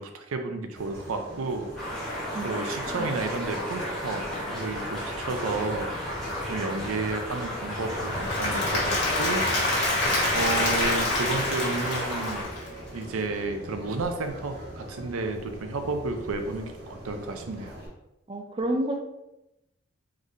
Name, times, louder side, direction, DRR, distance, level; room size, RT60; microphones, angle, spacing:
voice 1, 0.0-1.7 2.4-5.9 6.5-9.5 10.3-12.4 12.9-17.7, right 3 dB, 90° right, 6 dB, 0.5 m, -32 dB
sound 1, 0.7-17.9, equal, 50° right, 1.1 m, -40 dB
sound 2, 1.8-12.4, equal, 5° left, 1.1 m, -34 dB
Applause / Crowd, 8.0-13.0, left 2 dB, 55° left, 1.4 m, -26 dB
voice 2, 18.3-19.1, right 1 dB, 25° right, 3 dB, 0.4 m, -29 dB
4.0 x 3.1 x 2.6 m, 0.91 s
head